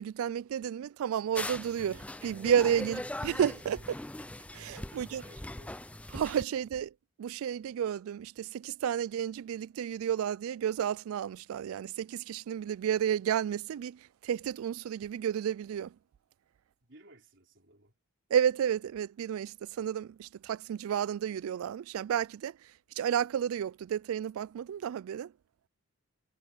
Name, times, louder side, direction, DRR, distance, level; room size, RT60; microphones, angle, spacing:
voice 1, 0.0-3.8 4.5-5.2 6.1-6.9 7.2-15.9 18.3-22.6 23.0-25.3, right 9 dB, 80° right, 0.3 m, -31 dB
sound 1, 1.3-6.4, left 1 dB, 5° left, 0.4 m, -41 dB
voice 2, 2.8-3.1 4.7-5.7 16.8-18.0, right 2 dB, 55° right, 5.0 m, -58 dB
head